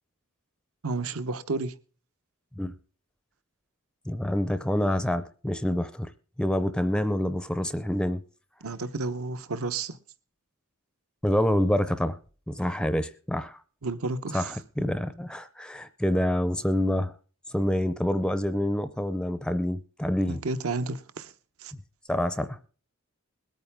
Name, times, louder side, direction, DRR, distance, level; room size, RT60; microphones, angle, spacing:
voice 1, 0.8-1.7 8.6-10.0 13.8-14.6 20.3-21.3 21.6-21.7, right 3 dB, 70° right, 0.9 m, -31 dB
voice 2, 4.1-6.1 6.4-8.2 11.2-12.2 12.5-13.6 14.3-17.1 17.5-20.4 22.1-22.6, left 1 dB, 5° left, 0.5 m, -27 dB
21.0 x 9.1 x 3.5 m
head